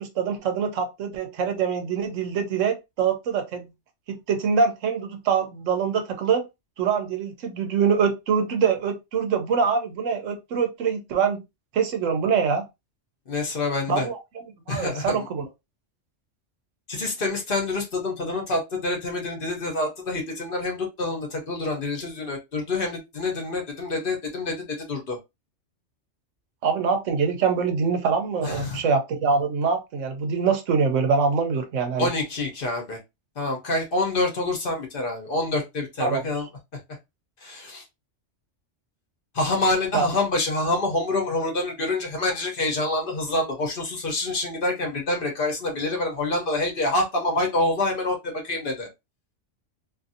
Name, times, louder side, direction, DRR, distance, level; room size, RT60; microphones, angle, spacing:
voice 1, 0.0-3.7 4.1-6.4 6.8-11.4 11.7-12.6 13.9-15.5 26.6-32.1 36.0-36.2 39.9-40.1, right 6 dB, 90° right, 1.1 m, -24 dB
voice 2, 13.3-14.1 14.7-15.3 16.9-25.2 28.4-28.8 32.0-33.0 33.4-36.5 37.4-37.8 39.3-48.9, left 2 dB, 50° left, 1.0 m, -27 dB
2.7 x 2.6 x 2.6 m
omnidirectional pair, 1.3 m